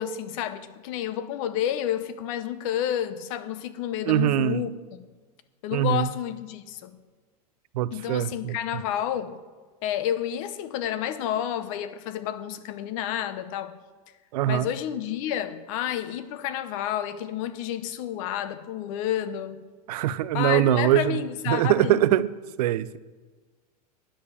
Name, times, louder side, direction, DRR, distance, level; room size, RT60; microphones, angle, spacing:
voice 1, 0.0-4.7 5.6-6.9 7.9-9.4 9.8-13.7 14.5-19.7 20.3-22.0, left 10 dB, 55° left, 0.9 m, -30 dB
voice 2, 4.1-4.6 5.7-6.1 7.7-8.6 14.3-14.7 19.9-21.2 21.5-22.3 22.6-23.0, right 13 dB, 75° right, 0.5 m, -23 dB
10.0 x 6.8 x 6.9 m
supercardioid pair, 140°, 20 cm